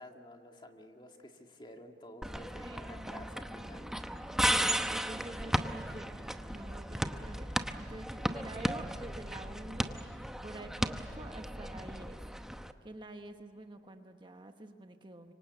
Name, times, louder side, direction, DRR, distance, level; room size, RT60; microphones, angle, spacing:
voice 1, 0.0-4.0, left 1 dB, 25° left, 3 dB, 2.0 m, -51 dB
sound 1, 2.2-12.7, equal, 5° right, 0.8 m, -35 dB
voice 2, 2.6-4.0 4.6-12.2 12.8-15.3, right 2 dB, 25° right, 6 dB, 1.2 m, -48 dB
25.5 x 24.5 x 8.1 m, 2.4 s
head